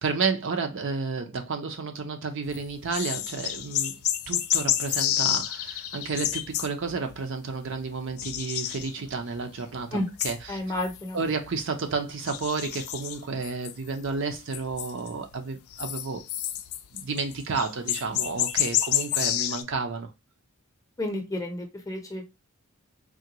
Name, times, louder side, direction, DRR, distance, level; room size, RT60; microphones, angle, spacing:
voice 1, 0.0-4.0 4.3-10.0 10.2-10.6 11.1-16.2 16.9-20.1, right 4 dB, 55° right, 0.5 m, -31 dB
sound 1, 2.5-7.2 7.6-9.4 9.8-11.7 12.3-14.2 14.5-15.3 15.7-19.6, left 12 dB, 70° left, 0.4 m, -29 dB
voice 2, 10.5-11.2 21.0-22.2, left 1 dB, 15° left, 0.6 m, -31 dB
3.7 x 2.2 x 2.8 m
head